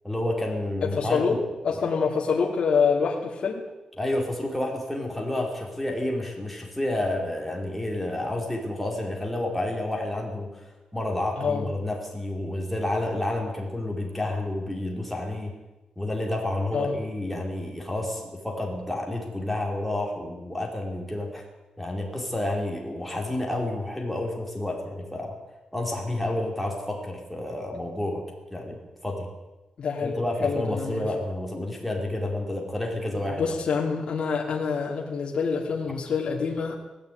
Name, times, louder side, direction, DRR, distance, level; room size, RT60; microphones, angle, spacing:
voice 1, 0.0-1.4 4.0-15.5 16.0-21.4 21.8-25.3 25.7-28.2 28.5-29.3 30.0-33.5, left 1 dB, ahead, -1 dB, 4.8 m, -30 dB
voice 2, 0.8-1.4 1.6-3.6 11.4-11.6 16.7-17.0 29.8-31.0 33.4-36.8, left 5 dB, 50° left, -3 dB, 2.9 m, -26 dB
19.5 x 14.5 x 9.5 m, 1.1 s
wide cardioid pair, 145°, 2 cm